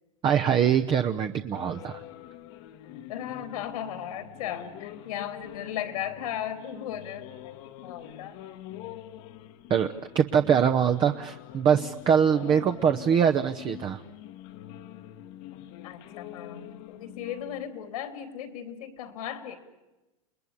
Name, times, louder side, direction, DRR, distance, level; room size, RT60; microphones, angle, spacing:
voice 1, 0.2-2.0 9.7-9.9 10.1-14.0, right 8 dB, 25° right, 5 dB, 0.9 m, -23 dB
sound 1, 1.5-17.7, left 12 dB, 50° left, 1.4 m, -45 dB
voice 2, 3.1-8.4 15.8-19.6, left 10 dB, 75° left, 8 dB, 3.5 m, -36 dB
29.0 x 20.0 x 9.9 m, 1.1 s
supercardioid pair, 135°, 19 cm